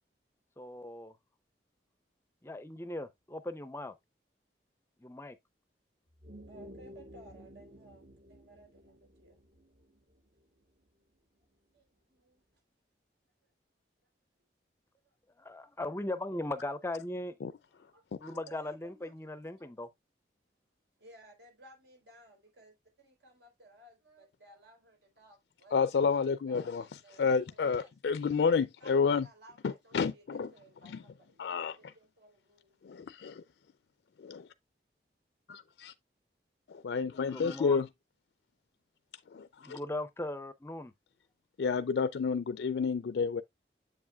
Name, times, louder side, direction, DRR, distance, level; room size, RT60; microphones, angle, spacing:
voice 1, 0.6-1.1 2.4-3.9 5.0-5.4 15.4-17.4 18.2-19.9 37.3-37.8 39.6-40.9, left 1 dB, 15° left, 0.4 m, -38 dB
sound 1, 6.1-10.9, equal, 50° right, 0.9 m, -53 dB
voice 2, 6.5-9.4 11.7-12.4 15.0-15.4 17.9-19.1 19.6-19.7 21.0-28.5 28.8-31.4 31.7-33.1, right 1 dB, 85° right, 3.8 m, -58 dB
voice 3, 25.7-26.8 27.2-29.3 29.6-30.5 30.8-31.0 31.4-31.9 32.8-33.4 34.2-34.5 35.5-35.9 36.8-37.9 39.3-39.8 41.6-43.4, left 5 dB, 75° left, 0.4 m, -30 dB
7.7 x 7.2 x 2.3 m
head